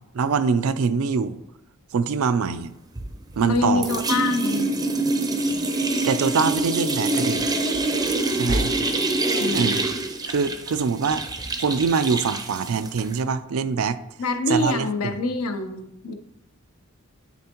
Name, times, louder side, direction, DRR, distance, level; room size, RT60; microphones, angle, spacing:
voice 1, 0.1-1.4 1.9-2.7 3.4-3.9 6.0-7.5 8.3-8.7 9.5-9.8 10.3-11.2 11.6-14.0 14.5-14.9, right 5 dB, 70° right, 0.4 m, -23 dB
sound 1, 3.0-3.6 3.8-13.2, right 2 dB, 20° right, 0.5 m, -25 dB
voice 2, 3.4-4.7 9.3-9.8 14.2-16.1, left 2 dB, 80° left, 0.7 m, -25 dB
9.9 x 4.2 x 2.9 m
head